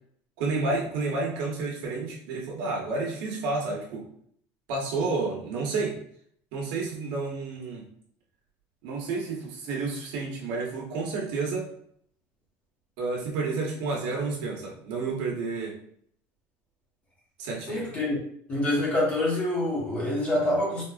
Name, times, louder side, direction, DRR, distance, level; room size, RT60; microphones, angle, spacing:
voice 1, 0.4-4.1 4.7-6.0 6.5-7.9 8.8-11.7 13.0-15.8 17.4-17.8, right 3 dB, 70° right, -1 dB, 1.1 m, -30 dB
voice 2, 17.7-18.2 18.5-20.8, left 1 dB, 20° left, -5 dB, 1.1 m, -26 dB
4.1 x 2.5 x 2.3 m, 0.64 s
cardioid pair, 175°, 7 cm